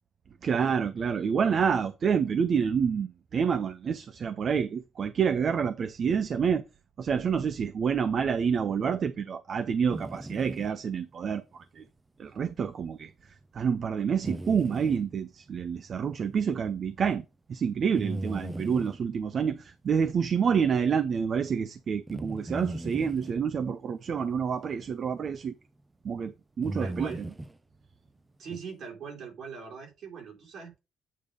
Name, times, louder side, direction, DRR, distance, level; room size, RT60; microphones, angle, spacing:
voice 1, 0.4-6.6 7.0-11.8 12.2-13.1 13.5-17.2 17.5-25.5 26.0-27.1, right 6 dB, 55° right, 0.6 m, -28 dB
sound 1, 9.9-10.7 14.2-15.0 17.9-19.0 22.1-23.3 25.3-25.4 26.6-27.6 28.5-28.6, right 1 dB, 15° right, 0.7 m, -37 dB
voice 2, 20.7-21.1 26.8-27.3 28.4-30.8, right 5 dB, 70° right, 3.6 m, -42 dB
8.6 x 3.5 x 5.1 m
cardioid pair, 90°, 0 cm